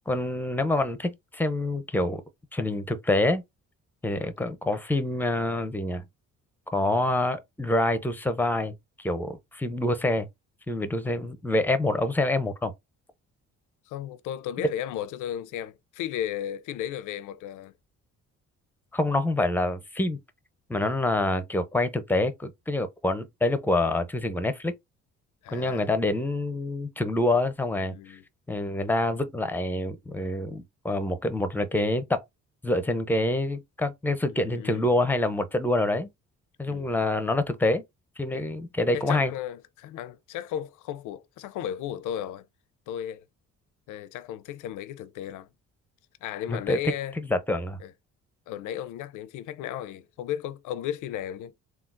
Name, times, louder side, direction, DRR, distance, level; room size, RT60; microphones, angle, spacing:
voice 1, 0.1-2.2 2.5-3.4 4.0-6.0 6.7-10.3 10.7-12.7 18.9-20.2 20.7-24.7 25.5-28.2 28.5-32.2 32.6-36.1 36.6-37.8 38.2-39.3 46.5-47.8, left 2 dB, 5° left, 0.5 m, -26 dB
voice 2, 13.9-17.7 25.4-25.9 27.8-28.2 34.4-34.9 36.7-36.9 38.3-38.5 38.9-42.5 42.9-43.2 43.9-45.5 46.2-47.2 47.8-47.9 48.5-51.5, left 11 dB, 85° left, 0.5 m, -35 dB
3.7 x 2.3 x 2.4 m
cardioid pair, 90°, 30 cm